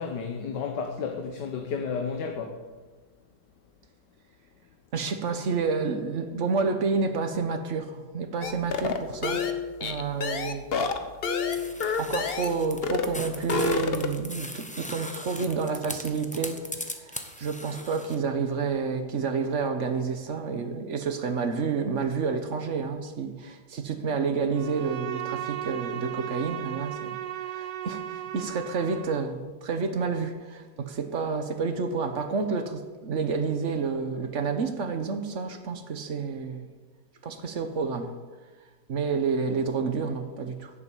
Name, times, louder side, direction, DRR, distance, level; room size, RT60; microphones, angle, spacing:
voice 1, 0.0-2.6, left 5 dB, 85° left, 1.6 m, -32 dB
voice 2, 4.9-9.4 9.8-10.7 12.0-16.6 17.0-27.2 27.4-28.0 28.3-36.7 37.2-38.1 38.9-40.7, right 5 dB, 50° right, 1.3 m, -29 dB
sound 1, 8.4-12.6 12.8-13.1 13.4-14.2, left 5 dB, 45° left, 0.9 m, -28 dB
sound 2, 11.5-18.2, left 1 dB, 5° left, 0.6 m, -39 dB
Bowed string instrument, 24.5-29.3, right 12 dB, 90° right, 1.3 m, -36 dB
11.0 x 7.4 x 8.3 m
omnidirectional pair, 1.8 m